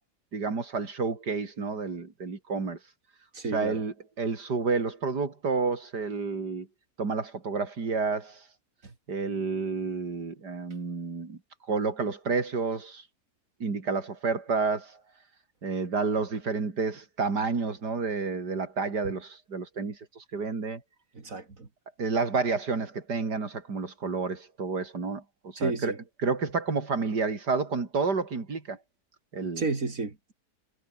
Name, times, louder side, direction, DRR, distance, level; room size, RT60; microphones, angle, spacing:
voice 1, 0.3-2.8 3.5-6.7 7.0-8.4 9.1-11.4 11.7-13.0 13.6-15.0 15.6-20.8 22.0-28.8 29.3-29.7, right 4 dB, 80° right, 3.8 m, -30 dB
voice 2, 3.3-3.8 21.1-21.7 25.6-26.0 29.6-30.3, right 3 dB, 55° right, 3.4 m, -31 dB
omnidirectional pair, 1.7 m